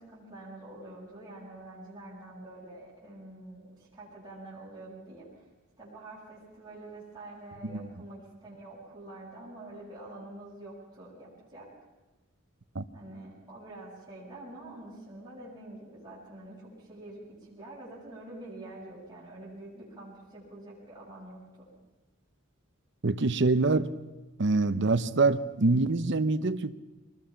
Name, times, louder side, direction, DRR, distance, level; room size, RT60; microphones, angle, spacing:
voice 1, 0.0-5.3 5.8-11.7 12.9-21.7, right 1 dB, 20° right, 7.1 m, -46 dB
voice 2, 23.0-23.9 24.4-26.7, right 3 dB, 60° right, 0.8 m, -25 dB
23.5 x 20.0 x 5.9 m
head